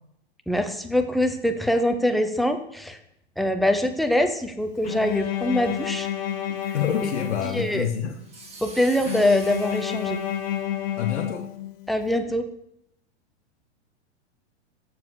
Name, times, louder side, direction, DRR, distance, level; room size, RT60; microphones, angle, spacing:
voice 1, 0.5-3.0 3.4-6.1 7.0-7.1 7.4-7.8 8.6-10.2 11.9-12.5, left 1 dB, ahead, 6 dB, 0.6 m, -23 dB
Bowed string instrument, 4.8-8.1 9.0-12.0, left 10 dB, 55° left, 1.3 m, -30 dB
voice 2, 6.5-8.2 11.0-11.4, left 8 dB, 90° left, 2 dB, 1.1 m, -27 dB
sound 1, 6.6-11.0, right 3 dB, 20° right, 1.6 m, -46 dB
7.5 x 6.7 x 6.3 m, 0.78 s
hypercardioid pair, 130°, 34 cm